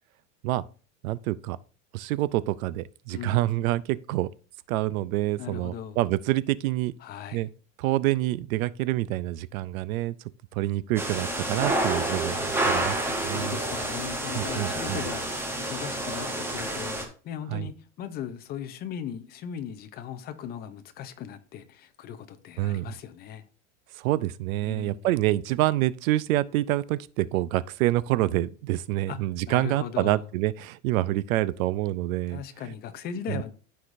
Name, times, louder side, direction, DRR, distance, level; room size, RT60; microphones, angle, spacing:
voice 1, 1.0-1.6 1.9-4.3 4.7-6.9 7.3-7.5 7.8-10.2 10.5-13.6 14.3-15.0 17.5-17.7 22.6-22.9 23.9-32.4 33.3-33.4, right 16 dB, 85° right, 0.6 m, -27 dB
voice 2, 3.1-3.4 5.4-6.0 7.0-7.5 13.1-23.4 24.6-25.1 29.1-29.2 29.5-30.2 32.3-33.5, left 9 dB, 25° left, 0.6 m, -38 dB
sound 1, 11.0-17.0, right 1 dB, 5° right, 0.9 m, -29 dB
13.5 x 4.9 x 2.6 m
supercardioid pair, 160°, 40 cm